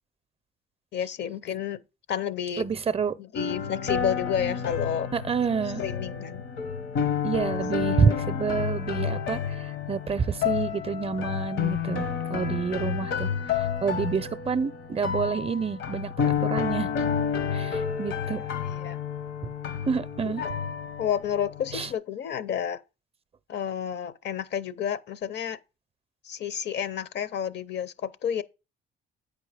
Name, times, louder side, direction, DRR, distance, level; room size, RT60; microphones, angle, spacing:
voice 1, 0.9-1.8 2.1-2.6 3.2-5.1 5.8-6.4 18.8-19.0 20.4-20.5 21.0-22.8 23.5-25.6 26.2-28.4, left 9 dB, 60° left, 0.6 m, -30 dB
voice 2, 2.6-3.1 5.1-5.8 7.2-13.3 13.8-16.9 17.5-18.4 19.9-20.4 21.7-21.9, right 6 dB, 30° right, 0.5 m, -28 dB
sound 1, 3.3-21.9, left 7 dB, 75° left, 1.0 m, -30 dB
8.3 x 5.1 x 4.9 m
cardioid pair, 90°, 20 cm